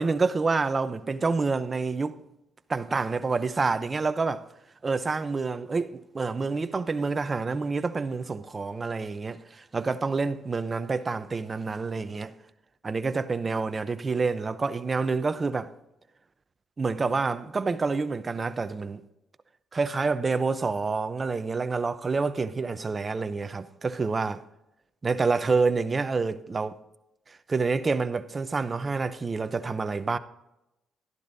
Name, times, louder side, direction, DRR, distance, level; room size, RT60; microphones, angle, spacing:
voice 1, 0.0-2.2 2.7-4.4 4.8-12.3 12.8-15.7 16.8-19.0 19.7-24.4 25.0-26.8 27.3-30.2, right 4 dB, 30° right, 0.7 m, -28 dB
12.0 x 11.5 x 2.7 m
cardioid pair, 90°, 0 cm